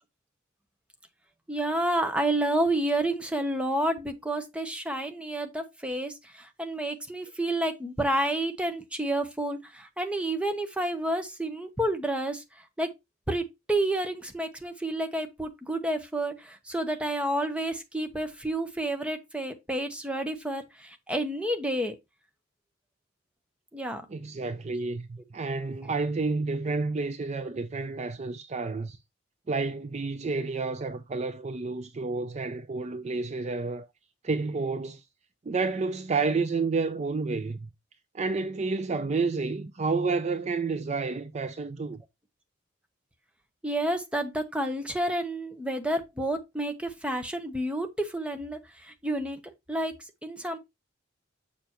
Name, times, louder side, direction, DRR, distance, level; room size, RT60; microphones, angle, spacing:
voice 1, 1.5-12.4 12.8-12.9 13.3-22.0 23.7-24.0 43.6-50.6, right 1 dB, 5° right, 0.8 m, -30 dB
voice 2, 24.1-29.0 29.5-33.9 34.2-35.0 35.5-37.7 38.1-42.0, right 4 dB, 35° right, 0.4 m, -30 dB
6.8 x 5.5 x 3.0 m
head